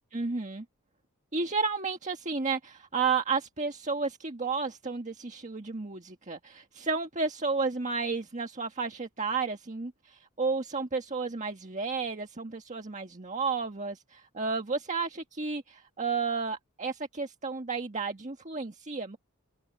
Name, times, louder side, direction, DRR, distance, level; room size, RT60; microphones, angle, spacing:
voice 1, 0.1-0.6 1.3-19.2, right 4 dB, 35° right, 1.5 m, -32 dB
head